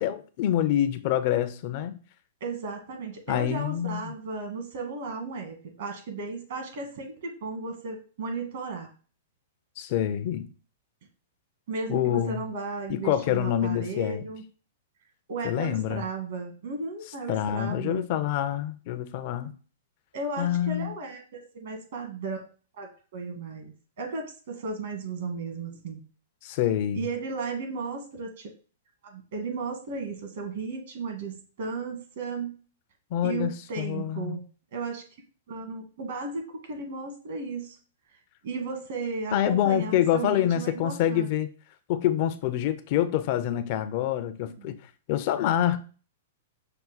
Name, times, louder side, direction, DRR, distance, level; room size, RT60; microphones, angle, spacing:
voice 1, 0.0-2.0 3.3-4.1 9.8-10.5 11.9-12.4 12.9-14.2 15.4-16.0 17.3-19.5 20.4-20.9 26.4-27.0 33.1-34.4 39.3-41.5 41.9-44.8 45.1-45.8, left 11 dB, 50° left, 0.5 m, -26 dB
voice 2, 2.4-8.9 11.7-14.4 15.3-18.0 20.1-22.4 22.8-26.0 26.9-28.5 29.0-32.5 33.2-34.4 34.7-35.0 35.5-37.8 38.4-41.3 44.4-44.8, right 4 dB, 65° right, 1.4 m, -35 dB
5.5 x 2.2 x 3.9 m
hypercardioid pair, 130°, 0 cm